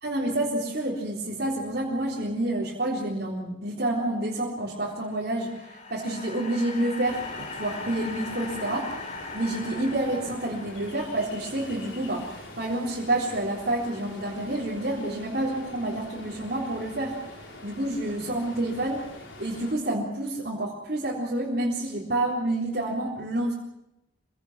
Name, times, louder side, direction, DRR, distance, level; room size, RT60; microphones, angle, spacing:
voice 1, 0.0-8.9 9.3-17.2 17.6-19.1 19.4-23.5, right 1 dB, 50° right, -5 dB, 3.9 m, -29 dB
sound 1, 4.9-11.3, left 3 dB, 40° left, 4.5 m, -40 dB
Ocean, 7.1-19.7, left 2 dB, 80° left, 5.5 m, -44 dB
26.0 x 17.5 x 7.5 m, 0.90 s
head